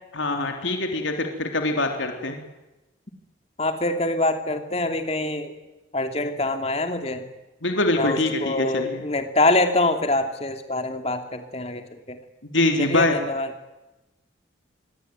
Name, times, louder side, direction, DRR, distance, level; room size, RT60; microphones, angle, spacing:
voice 1, 0.1-2.4 7.6-9.0 12.5-13.2, left 2 dB, 85° left, 4 dB, 3.5 m, -24 dB
voice 2, 3.6-5.5 5.9-7.2 8.0-12.2 12.8-13.5, left 2 dB, 30° left, 6 dB, 2.8 m, -25 dB
25.5 x 22.5 x 9.5 m, 1.0 s
head